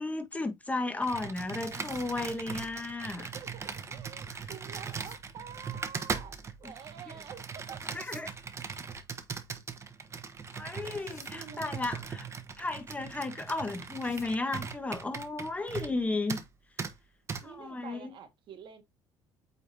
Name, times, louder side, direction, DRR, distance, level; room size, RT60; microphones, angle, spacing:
voice 1, 0.0-3.3 4.3-4.5 6.6-6.7 7.9-8.3 10.5-12.3 12.6-16.4 17.4-18.1, left 2 dB, 15° left, 1.5 m, -34 dB
Computer keyboard, 1.0-16.0 16.3-16.5 16.8-16.9 17.3-17.4, right 5 dB, 30° right, 1.2 m, -39 dB
sound 1, 1.4-2.1 4.2-5.2 7.4-8.2 10.5-11.3 13.5-14.3, left 5 dB, 30° left, 2.4 m, -59 dB
voice 2, 3.2-7.8 10.8-11.8 17.4-18.8, right 8 dB, 60° right, 1.8 m, -48 dB
8.7 x 4.1 x 2.8 m
cardioid pair, 110°, 10 cm